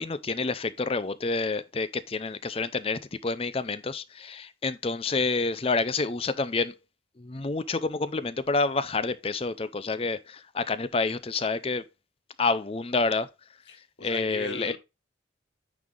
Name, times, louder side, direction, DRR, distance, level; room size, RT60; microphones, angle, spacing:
voice 1, 0.0-6.7 7.2-11.8 12.4-13.3 14.0-14.8, left 3 dB, 30° left, 0.5 m, -28 dB
voice 2, 13.7-14.8, left 2 dB, 65° left, 1.5 m, -38 dB
9.5 x 3.3 x 3.7 m
head